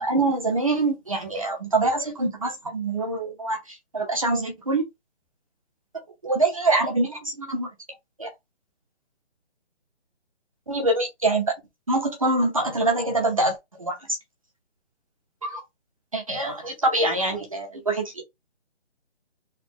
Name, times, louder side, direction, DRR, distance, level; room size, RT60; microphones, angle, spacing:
voice 1, 0.0-4.8 6.2-7.7 8.2-8.3 10.7-11.5 11.9-14.2 15.4-15.6 16.1-18.2, right 2 dB, 30° right, 0.8 m, -25 dB
4.2 x 2.2 x 2.9 m
hypercardioid pair, 175°, 34 cm